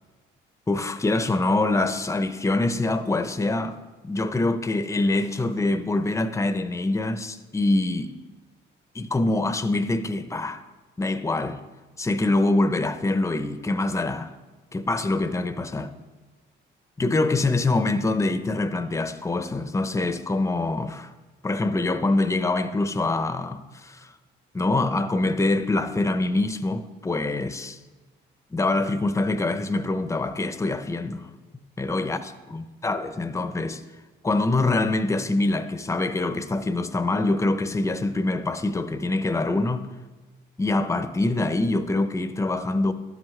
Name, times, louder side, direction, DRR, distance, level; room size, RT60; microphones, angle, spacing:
voice 1, 0.7-3.8 4.0-8.1 8.9-10.6 11.0-11.6 12.0-14.3 14.7-15.9 17.0-21.1 21.4-24.1 24.5-27.8 28.5-31.3 31.8-33.8 34.2-39.9 40.6-42.9, left 2 dB, 15° left, 0.6 m, -25 dB
12.5 x 10.5 x 3.2 m
cardioid pair, 90°, 20 cm